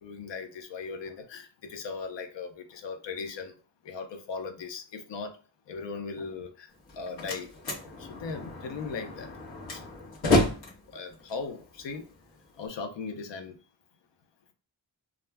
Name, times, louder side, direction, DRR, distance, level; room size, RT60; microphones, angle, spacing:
voice 1, 0.0-3.5 3.8-5.3 5.7-7.5 7.8-9.3 9.7-9.8 10.9-12.0 12.6-13.6, left 4 dB, 85° left, 7 dB, 0.6 m, -38 dB
Slam, 6.7-12.7, left 2 dB, 65° left, 1.0 m, -31 dB
2.4 x 2.1 x 3.3 m, 0.37 s
wide cardioid pair, 130°, 42 cm